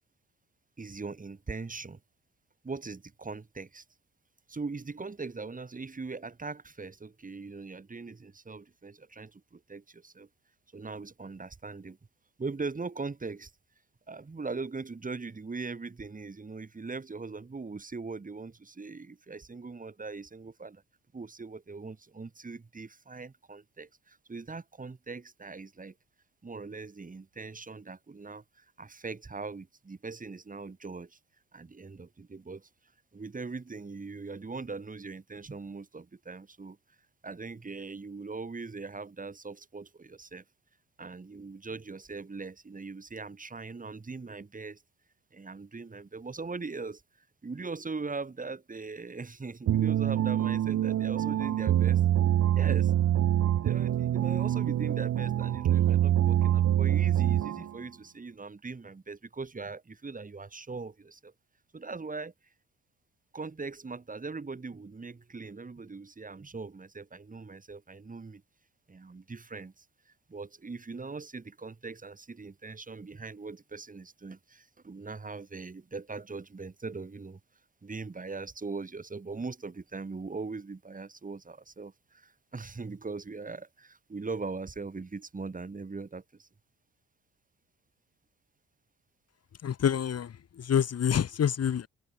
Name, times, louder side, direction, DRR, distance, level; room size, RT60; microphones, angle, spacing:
voice 1, 0.8-2.0 2.6-3.8 4.5-10.3 10.7-12.0 12.4-13.5 14.1-20.8 21.1-25.9 26.4-31.2 31.5-32.7 33.1-36.8 37.2-40.4 41.0-44.8 45.3-47.0 47.4-52.0 52.6-52.9 53.6-61.3 61.7-62.3 63.3-68.4 68.9-69.8 70.3-77.4 77.8-86.5, right 4 dB, 25° right, 7.8 m, -40 dB
sound 1, 49.7-57.8, right 11 dB, 65° right, 1.3 m, -25 dB
voice 2, 89.6-91.9, left 8 dB, 55° left, 3.2 m, -27 dB
cardioid pair, 90°, 30 cm